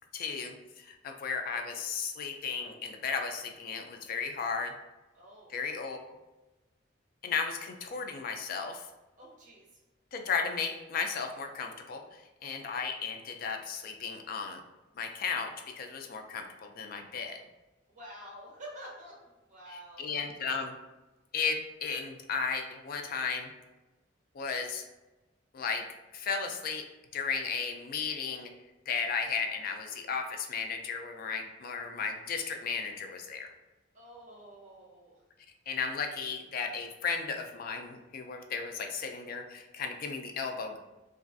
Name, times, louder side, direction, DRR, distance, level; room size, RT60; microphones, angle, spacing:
voice 1, 0.1-4.7 5.5-6.0 7.2-8.9 10.1-14.6 15.0-17.4 19.7-20.7 21.3-23.5 24.3-24.8 25.5-25.9 26.1-26.8 27.1-28.5 28.9-33.5 35.7-40.8, left 5 dB, 50° left, 4 dB, 0.3 m, -35 dB
voice 2, 5.1-5.5 9.2-9.8 17.9-20.2 33.9-35.2, equal, 40° right, -3 dB, 0.9 m, -49 dB
3.0 x 2.4 x 2.5 m, 1.1 s
head